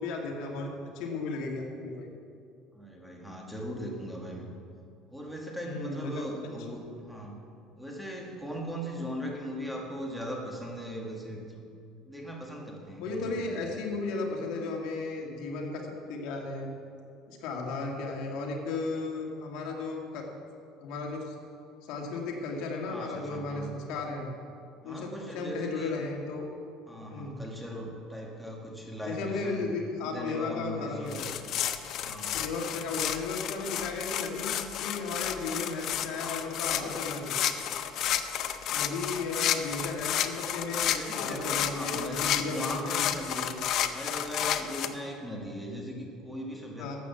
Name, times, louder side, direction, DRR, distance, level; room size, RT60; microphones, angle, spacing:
voice 1, 0.0-2.1 5.6-6.5 13.0-15.8 16.1-16.7 17.3-20.3 20.8-21.3 21.8-24.3 24.8-26.5 27.1-27.4 29.1-31.3 32.3-34.5 34.8-37.5 38.7-43.1 46.8-47.0, left 3 dB, 70° left, 0 dB, 2.2 m, -35 dB
voice 2, 2.7-4.5 5.1-7.4 7.8-11.7 12.0-13.6 22.8-23.7 24.8-26.0 26.9-29.7 30.0-31.2 32.0-32.5 39.4-39.6 40.9-43.6 43.9-47.0, equal, ahead, -1 dB, 1.8 m, -39 dB
sound 1, 31.1-44.9, left 10 dB, 50° left, 0.7 m, -31 dB
12.5 x 8.4 x 7.1 m, 2.5 s
cardioid pair, 140°, 0 cm